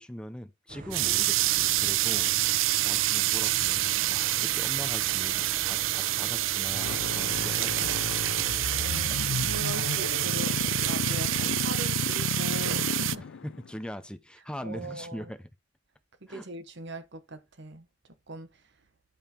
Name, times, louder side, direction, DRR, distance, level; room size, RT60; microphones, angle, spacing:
voice 1, 0.0-8.2 13.4-15.5 16.3-16.5, equal, 5° left, 0.6 m, -41 dB
sound 1, 0.7-11.7, right 2 dB, 45° right, 0.8 m, -43 dB
sound 2, 0.9-13.2, right 16 dB, 75° right, 0.4 m, -27 dB
sound 3, 6.7-13.7, left 5 dB, 80° left, 0.5 m, -33 dB
voice 2, 8.8-10.5 10.8-13.3 14.6-15.3 16.3-17.9 18.3-18.5, right 2 dB, 60° right, 1.3 m, -40 dB
10.0 x 5.5 x 4.4 m
head